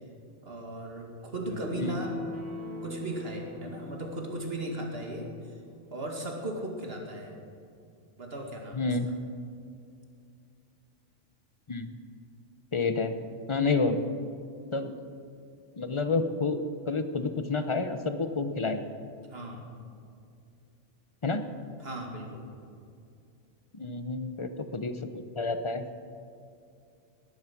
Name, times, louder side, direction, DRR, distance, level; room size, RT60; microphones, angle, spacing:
voice 1, 0.4-2.2 2.8-5.3 5.9-7.3 8.2-8.8 19.3-19.7 21.8-22.4, right 1 dB, 50° right, 1 dB, 2.5 m, -36 dB
sound 1, 1.5-5.0, left 1 dB, 70° right, 2.7 m, -41 dB
voice 2, 8.7-9.1 11.7-11.9 12.7-13.1 13.5-14.0 14.7-14.9 15.8-18.8 21.2-21.5 23.7-25.0 25.3-25.8, left 3 dB, 25° left, 9 dB, 0.8 m, -29 dB
18.5 x 11.5 x 6.1 m, 2.5 s
omnidirectional pair, 1.3 m